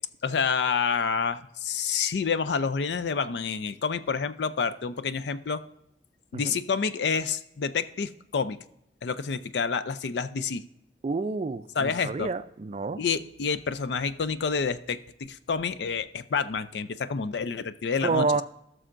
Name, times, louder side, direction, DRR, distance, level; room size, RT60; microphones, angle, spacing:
voice 1, 0.2-5.6 6.3-8.6 9.0-10.6 11.8-12.3 13.0-18.4, left 5 dB, 75° left, 12 dB, 0.5 m, -28 dB
voice 2, 11.0-13.0 18.0-18.4, right 4 dB, 35° right, 13 dB, 0.4 m, -28 dB
17.0 x 6.3 x 2.5 m, 0.80 s
head